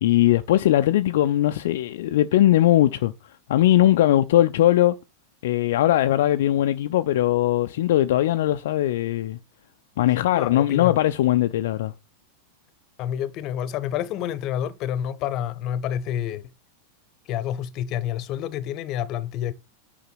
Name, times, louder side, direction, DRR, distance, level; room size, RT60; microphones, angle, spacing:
voice 1, 0.0-3.1 3.5-5.0 5.4-9.4 10.0-11.9, left 13 dB, 55° left, 0.6 m, -20 dB
voice 2, 10.3-11.0 13.0-16.5 17.3-19.5, left 10 dB, 40° left, 1.0 m, -28 dB
9.6 x 5.7 x 5.8 m
figure-of-eight pair, 90°, 0 cm